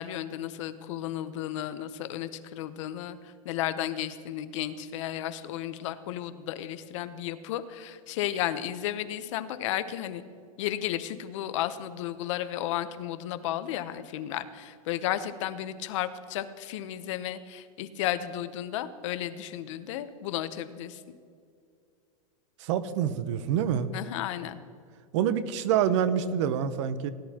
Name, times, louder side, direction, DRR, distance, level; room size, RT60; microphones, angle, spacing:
voice 1, 0.0-3.2 3.4-10.2 10.6-21.0 23.9-24.6, left 12 dB, 55° left, 12 dB, 0.8 m, -33 dB
voice 2, 22.6-23.9 25.1-27.1, right 9 dB, 55° right, 14 dB, 0.8 m, -26 dB
18.0 x 10.5 x 2.9 m, 2.3 s
supercardioid pair, 160°, 19 cm